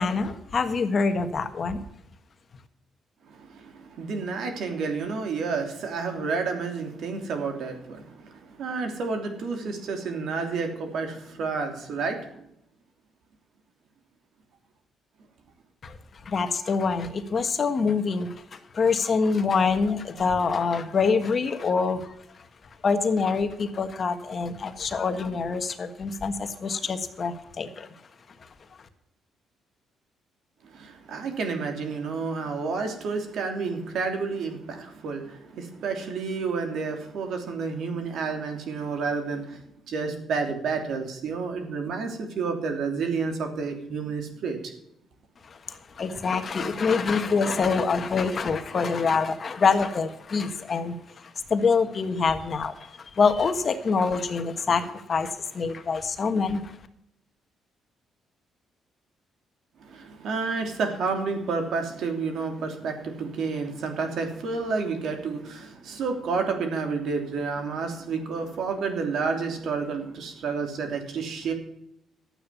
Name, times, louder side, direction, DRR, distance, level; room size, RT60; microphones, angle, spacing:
voice 1, 0.0-1.8 15.8-16.0 16.2-22.1 22.8-27.9 28.4-28.5 45.4-56.8, left 5 dB, 45° left, 8 dB, 1.5 m, -25 dB
voice 2, 3.3-12.3 30.6-44.6 59.8-71.5, right 4 dB, 70° right, 5 dB, 3.1 m, -30 dB
12.0 x 8.9 x 7.1 m, 0.79 s
cardioid pair, 90°, 0 cm